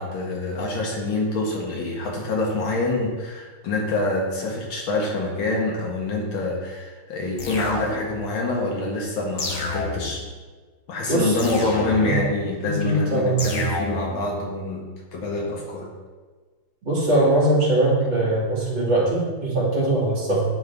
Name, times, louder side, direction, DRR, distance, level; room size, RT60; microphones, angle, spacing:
voice 1, 0.0-10.2 10.9-15.9, left 2 dB, 80° left, -2 dB, 2.2 m, -26 dB
sound 1, 7.4-8.3 9.4-10.3 11.4-12.3 13.4-14.3, left 2 dB, 50° left, 1.2 m, -30 dB
voice 2, 12.6-13.6 16.8-20.5, right 1 dB, 70° right, -8 dB, 3.4 m, -21 dB
11.0 x 4.0 x 3.6 m, 1.4 s
omnidirectional pair, 2.2 m